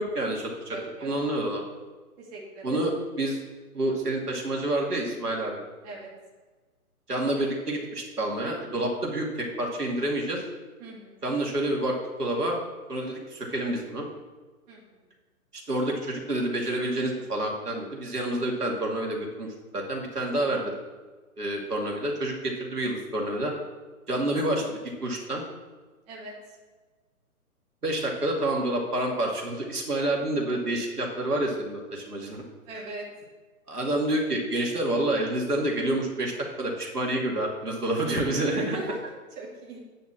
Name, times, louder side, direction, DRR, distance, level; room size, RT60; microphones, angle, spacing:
voice 1, 0.0-0.8 1.0-1.6 2.6-2.9 3.2-3.4 3.7-5.6 7.1-10.4 11.2-12.6 12.9-14.0 15.5-19.5 19.7-20.7 21.4-23.5 24.1-25.4 27.8-32.4 33.7-36.3 36.6-38.8, right 1 dB, 85° right, -1 dB, 2.4 m, -28 dB
voice 2, 0.7-1.1 2.2-2.8 5.8-6.1 10.8-11.3 14.7-15.0 26.1-26.6 32.6-33.1 38.4-39.0 39.4-39.8, right 3 dB, 25° right, -4 dB, 2.2 m, -39 dB
9.1 x 4.4 x 7.4 m, 1.3 s
figure-of-eight pair, 140°, 45 cm